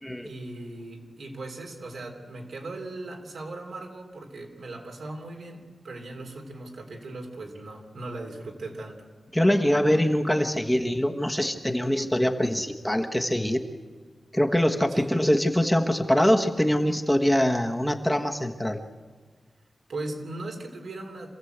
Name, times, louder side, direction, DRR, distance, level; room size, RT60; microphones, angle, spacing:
voice 1, 0.2-9.1 14.9-15.2 19.9-21.3, right 2 dB, 85° right, 2 dB, 3.3 m, -38 dB
voice 2, 9.3-13.7 14.3-18.8, equal, 5° left, 3 dB, 1.3 m, -23 dB
26.5 x 16.0 x 8.0 m, 1.5 s
wide cardioid pair, 120°, 0 cm